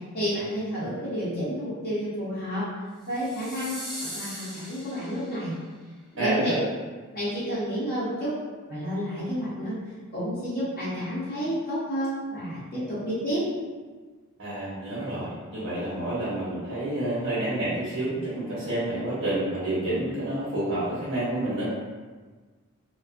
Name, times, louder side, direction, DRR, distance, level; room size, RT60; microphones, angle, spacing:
voice 1, 0.1-2.7 3.1-5.5 6.1-6.5 7.1-8.3 8.7-9.7 10.1-13.4, equal, 40° left, -11 dB, 0.6 m, -30 dB
sound 1, 3.1-5.5, equal, ahead, 0.3 m, -39 dB
voice 2, 6.2-6.6 14.4-21.6, right 1 dB, 75° right, -10 dB, 0.8 m, -29 dB
2.4 x 2.2 x 2.4 m, 1.4 s
head